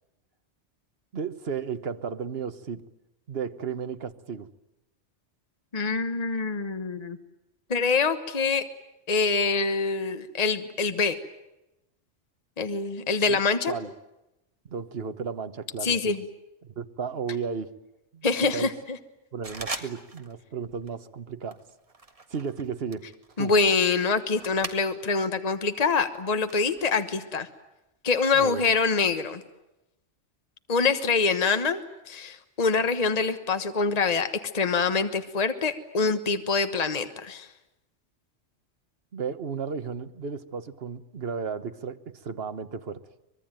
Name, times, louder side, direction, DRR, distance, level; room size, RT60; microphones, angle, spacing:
voice 1, 1.1-2.8 3.3-4.5 13.0-13.4 13.7-13.9 14.7-16.0 16.7-17.7 18.1-18.3 18.5-18.7 19.3-21.6 22.3-23.1 23.4-23.5 28.3-28.6 39.1-43.0, right 6 dB, 60° right, 11 dB, 1.4 m, -34 dB
voice 2, 5.7-7.2 7.7-8.7 9.1-11.2 12.6-13.8 15.8-16.2 18.2-19.0 23.4-27.5 28.0-29.4 30.7-37.5, left 4 dB, 35° left, 9 dB, 1.3 m, -25 dB
sound 1, 19.4-20.4 20.6-21.0 21.5-25.3 25.6-27.1, right 2 dB, 30° right, 1.8 m, -41 dB
24.5 x 22.0 x 9.1 m, 0.94 s
omnidirectional pair, 1.2 m